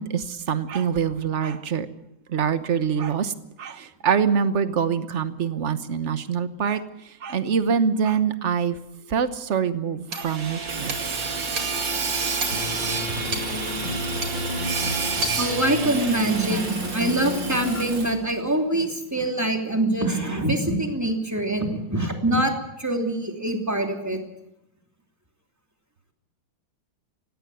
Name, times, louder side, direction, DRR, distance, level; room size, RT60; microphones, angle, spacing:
voice 1, 0.0-1.9 2.3-3.3 3.6-8.8 9.1-11.0, right 7 dB, 45° right, 11 dB, 1.1 m, -25 dB
Hammer / Sawing, 10.1-18.3, right 4 dB, 60° right, 2.9 m, -29 dB
sound 1, 12.5-17.8, left 2 dB, 60° left, 5.2 m, -33 dB
voice 2, 15.4-22.5 22.8-24.2, right 1 dB, 5° right, 3 dB, 2.9 m, -24 dB
18.0 x 16.5 x 9.2 m, 0.84 s
omnidirectional pair, 2.3 m